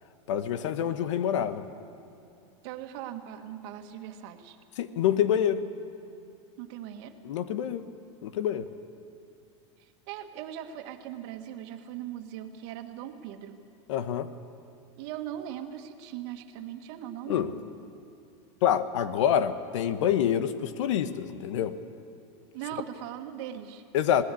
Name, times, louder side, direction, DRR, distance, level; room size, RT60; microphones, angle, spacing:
voice 1, 0.3-1.7 4.8-5.6 7.2-7.8 8.2-8.7 13.9-14.3 17.3-17.5 18.6-21.8 23.9-24.2, left 9 dB, 80° left, 12 dB, 1.2 m, -26 dB
voice 2, 2.6-4.6 6.6-7.1 9.8-13.6 15.0-17.6 22.5-23.8, right 11 dB, 60° right, 6 dB, 1.7 m, -40 dB
19.5 x 18.5 x 8.5 m, 2.5 s
supercardioid pair, 130°, 15 cm